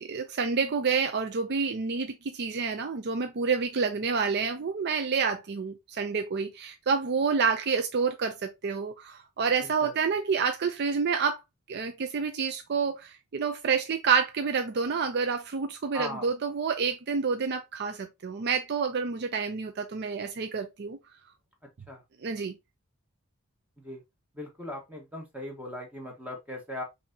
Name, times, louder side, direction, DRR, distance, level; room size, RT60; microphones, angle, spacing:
voice 1, 0.0-11.4 11.7-21.0 22.2-22.6, right 5 dB, 50° right, 0.4 m, -28 dB
voice 2, 9.6-9.9 15.9-16.3 21.9-22.0 23.8-24.0 24.3-26.8, left 1 dB, 5° right, 1.2 m, -39 dB
5.7 x 2.7 x 2.7 m
head